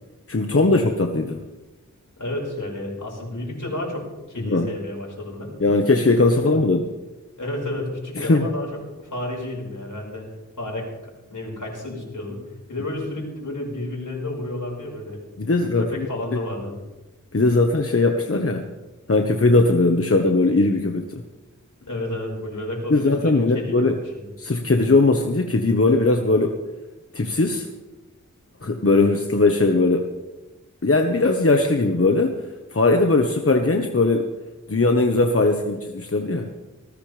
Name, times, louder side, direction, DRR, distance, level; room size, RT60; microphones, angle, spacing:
voice 1, 0.3-1.4 4.4-4.7 5.6-6.9 8.2-8.5 15.4-16.1 17.3-18.7 19.1-21.2 22.9-24.0 24.4-26.6 27.1-27.7 28.6-30.1 30.8-32.4 32.7-34.3 34.7-36.5, left 2 dB, 45° left, 3 dB, 1.3 m, -19 dB
voice 2, 2.2-5.5 6.4-6.6 7.4-10.3 10.6-10.9 11.2-15.2 15.5-16.8 21.8-23.8 24.1-24.2 28.9-29.0, left 1 dB, 80° left, -2 dB, 5.7 m, -31 dB
19.5 x 17.0 x 3.5 m, 1.1 s
wide cardioid pair, 55°, 31 cm